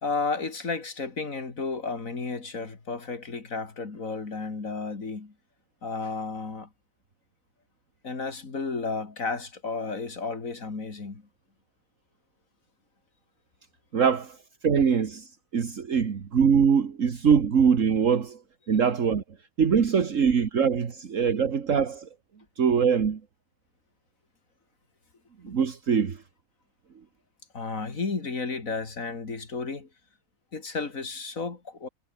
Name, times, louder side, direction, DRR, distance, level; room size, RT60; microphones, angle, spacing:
voice 1, 0.0-5.3 5.8-6.7 8.0-11.2 27.5-29.9 30.5-31.9, left 4 dB, 75° left, 3.3 m, -32 dB
voice 2, 13.9-14.4 14.6-18.4 18.7-19.2 19.6-22.1 22.6-23.2 25.4-26.2, right 6 dB, 65° right, 1.9 m, -23 dB
omnidirectional pair, 1.4 m